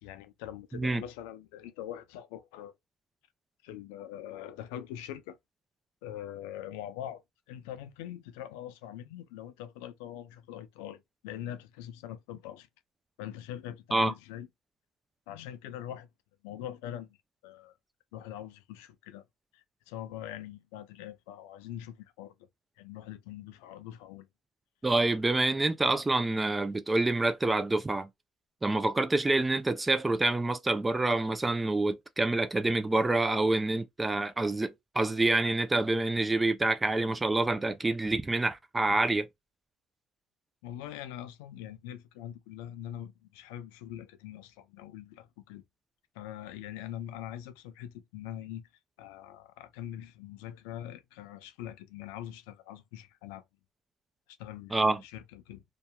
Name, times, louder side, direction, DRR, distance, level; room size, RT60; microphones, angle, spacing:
voice 1, 0.0-2.7 3.6-5.4 6.0-7.2 7.5-12.7 13.2-14.5 15.3-16.1 16.4-17.2 17.4-17.7 18.1-19.2 19.5-22.3 22.8-24.3 40.6-45.6 46.2-48.6 49.0-53.4 54.4-55.6, left 11 dB, 90° left, 0.4 m, -43 dB
voice 2, 24.8-28.1 28.6-39.3 54.7-55.0, right 2 dB, 15° right, 0.5 m, -27 dB
2.7 x 2.2 x 2.2 m
supercardioid pair, 85°, 0 cm